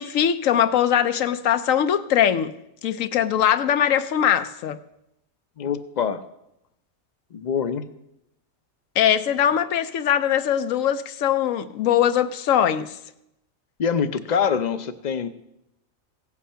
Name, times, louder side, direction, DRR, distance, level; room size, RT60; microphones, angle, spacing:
voice 1, 0.0-2.5 2.8-4.8 9.0-12.9, left 9 dB, 75° left, 1.0 m, -21 dB
voice 2, 5.6-6.2 7.3-7.8 13.8-15.3, left 7 dB, 45° left, 0.6 m, -24 dB
16.0 x 8.4 x 5.6 m
omnidirectional pair, 1.4 m